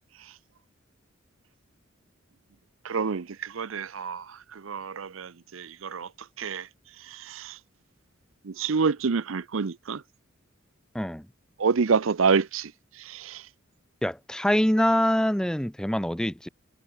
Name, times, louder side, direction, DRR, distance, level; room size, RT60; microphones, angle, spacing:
voice 1, 2.8-4.3 4.5-6.1 6.4-6.7 7.1-7.6 8.4-10.0 11.6-12.7 13.0-13.4, right 5 dB, 75° right, 0.6 m, -27 dB
voice 2, 14.0-16.5, equal, 5° left, 0.6 m, -24 dB
head